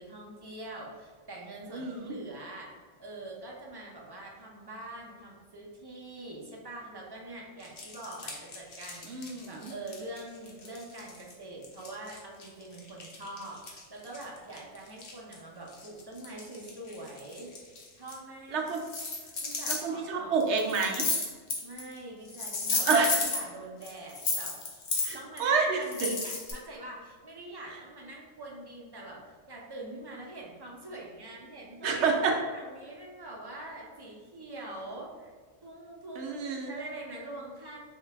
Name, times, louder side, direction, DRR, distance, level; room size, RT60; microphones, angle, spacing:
voice 1, 0.0-17.5 17.9-18.7 19.4-20.3 21.6-24.6 25.1-32.0 32.5-35.3 35.6-37.8, right 2 dB, 25° right, -2 dB, 0.5 m, -44 dB
voice 2, 1.7-2.2 9.1-9.7 18.5-18.8 19.7-21.1 22.9-23.2 25.0-26.1 31.8-32.4 36.2-36.7, right 4 dB, 70° right, 1 dB, 0.9 m, -28 dB
sound 1, 7.6-11.3 11.6-15.4 15.7-18.1 18.7-19.8 20.4-22.0 22.3-23.4 23.8-25.4 25.8-26.5, left 3 dB, 55° left, 0.9 m, -34 dB
3.8 x 2.8 x 3.3 m, 1.5 s
omnidirectional pair, 1.3 m